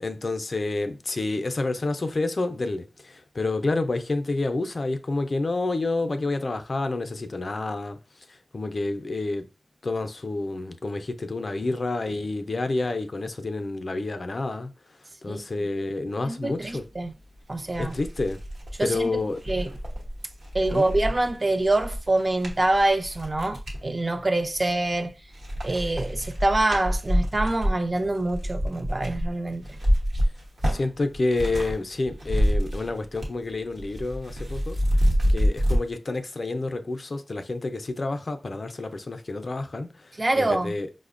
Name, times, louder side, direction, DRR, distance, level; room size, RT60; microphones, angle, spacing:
voice 1, 0.0-8.0 8.5-9.5 9.8-14.7 15.2-16.8 17.8-18.4 18.8-19.4 20.7-20.9 30.6-34.8 35.3-39.9 40.4-40.9, left 2 dB, 55° left, 0.4 m, -29 dB
voice 2, 15.3-15.7 16.3-17.1 17.5-17.9 18.8-19.2 19.5-19.7 20.5-25.2 25.6-29.7 40.2-40.7, right 2 dB, 35° right, 0.4 m, -25 dB
sound 1, 17.2-17.3 17.7-23.8 24.4-25.0 25.3-31.8 32.0-33.4 33.7-35.8, equal, 80° right, 0.9 m, -27 dB
4.9 x 2.1 x 2.4 m
wide cardioid pair, 75°, 0 cm